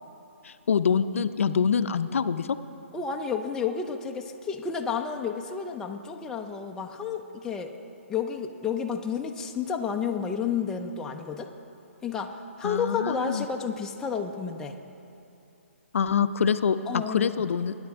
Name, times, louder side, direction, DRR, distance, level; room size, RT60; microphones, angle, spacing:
voice 1, 0.4-2.5 12.6-13.5 15.9-16.8 17.1-17.7, left 6 dB, 70° left, 11 dB, 0.5 m, -25 dB
voice 2, 2.9-7.8 8.1-11.5 12.0-14.8 16.9-17.5, left 6 dB, 5° left, 2 dB, 0.4 m, -31 dB
20.5 x 9.7 x 3.5 m, 2.7 s
hypercardioid pair, 155°, 7 cm